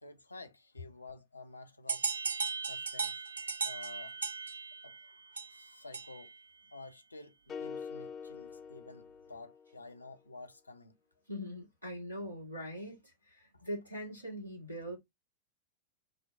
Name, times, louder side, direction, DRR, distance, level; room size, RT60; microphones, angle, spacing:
voice 1, 0.0-2.1 2.7-3.2 3.6-4.2 4.8-6.3 6.7-11.0 13.5-13.6, left 3 dB, 80° left, 0.6 m, -51 dB
sound 1, 1.9-6.4, right 5 dB, 70° right, 0.4 m, -37 dB
sound 2, 7.5-9.8, left 6 dB, 25° left, 0.5 m, -45 dB
voice 2, 11.3-15.0, equal, 90° right, 1.7 m, -42 dB
5.0 x 2.2 x 3.2 m
figure-of-eight pair, 90°, 0 cm